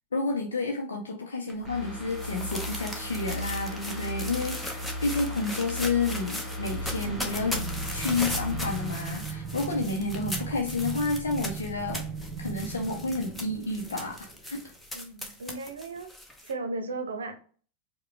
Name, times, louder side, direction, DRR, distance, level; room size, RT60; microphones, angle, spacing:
voice 1, 0.1-12.0 12.4-14.6, left 3 dB, 70° left, 0 dB, 0.6 m, -30 dB
sound 1, 1.5-16.5, left 1 dB, 5° left, 0.7 m, -39 dB
sound 2, 1.6-10.3 10.7-10.8, left 1 dB, 10° right, 1.3 m, -37 dB
voice 2, 3.8-4.2 14.9-16.1 16.4-17.4, right 3 dB, 65° right, 7 dB, 0.7 m, -36 dB
sound 3, 6.5-14.7, right 5 dB, 35° right, 0.9 m, -38 dB
4.7 x 2.2 x 3.2 m, 0.41 s
figure-of-eight pair, 90°, 0 cm